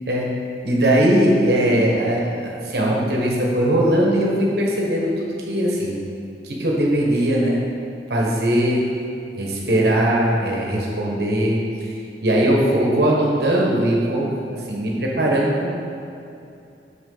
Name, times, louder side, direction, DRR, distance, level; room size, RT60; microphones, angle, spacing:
voice 1, 0.6-6.0 6.4-7.7 8.1-8.8 9.3-11.9 12.2-15.7, right 1 dB, 60° right, -2 dB, 1.2 m, -20 dB
8.2 x 5.8 x 3.9 m, 2.6 s
head